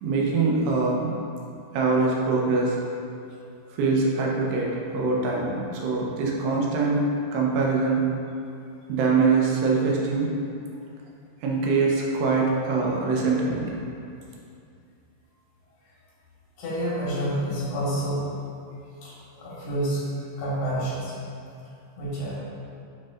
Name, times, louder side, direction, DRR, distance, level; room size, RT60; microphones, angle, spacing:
voice 1, 0.0-1.1 1.7-2.8 3.8-7.0 7.3-8.1 8.9-10.3 11.4-13.7, right 4 dB, 85° right, -2 dB, 2.9 m, -23 dB
voice 2, 16.6-18.2 19.0-20.1 20.4-21.1 22.0-22.4, right 1 dB, 75° left, -8 dB, 3.6 m, -28 dB
9.1 x 4.2 x 2.5 m, 2.5 s
omnidirectional pair, 4.7 m